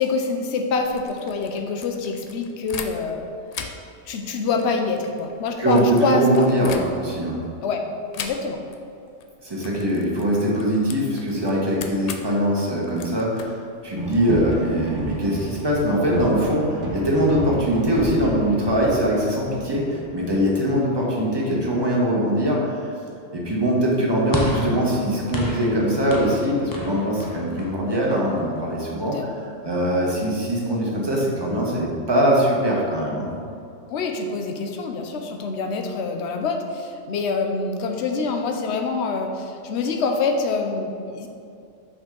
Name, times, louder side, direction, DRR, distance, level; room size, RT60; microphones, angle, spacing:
voice 1, 0.0-3.3 4.1-6.5 7.6-7.8 8.2-8.6 29.0-29.3 33.9-41.3, left 4 dB, 70° left, 3 dB, 0.9 m, -25 dB
sound 1, 0.8-3.2 3.5-7.3 8.1-8.8 9.1-9.3 9.6-14.2, left 6 dB, 85° left, 0.3 m, -39 dB
voice 2, 5.6-7.4 9.4-22.9 23.3-33.3, equal, 20° right, -4 dB, 1.2 m, -22 dB
sound 2, 14.0-21.5, right 2 dB, 75° right, 1.4 m, -33 dB
sound 3, 24.3-28.8, left 1 dB, 25° left, 0.5 m, -31 dB
6.0 x 5.3 x 3.8 m, 2.5 s
omnidirectional pair, 1.2 m